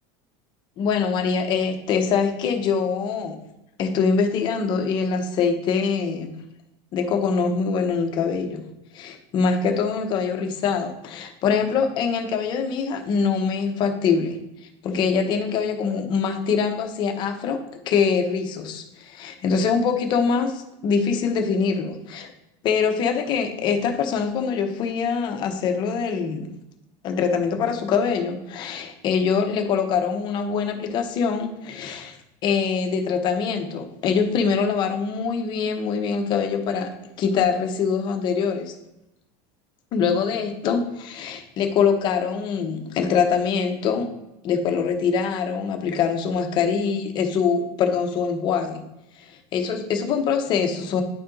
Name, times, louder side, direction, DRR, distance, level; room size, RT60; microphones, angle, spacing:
voice 1, 0.8-3.4 3.8-6.4 6.9-8.6 8.9-14.4 14.8-17.6 17.8-22.3 22.6-26.5 27.0-32.2 32.4-36.9 37.2-38.7 39.9-44.1 44.4-48.8 49.2-51.0, left 6 dB, 35° left, 5 dB, 1.0 m, -24 dB
9.9 x 4.3 x 3.9 m, 0.89 s
cardioid pair, 165°, 12 cm